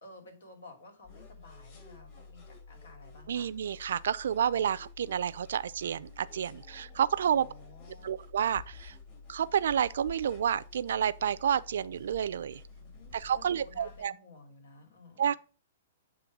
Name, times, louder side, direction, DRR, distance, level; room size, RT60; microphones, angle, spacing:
voice 1, 0.0-3.5 7.3-8.2 12.8-15.3, left 2 dB, 85° left, 2.5 m, -53 dB
sound 1, 1.0-14.0, left 4 dB, 45° left, 3.6 m, -51 dB
voice 2, 3.3-7.5 8.0-9.0 9.3-12.6 13.1-14.1 15.2-15.4, right 8 dB, 75° right, 0.4 m, -30 dB
8.5 x 3.1 x 5.9 m
hypercardioid pair, 145°, 0 cm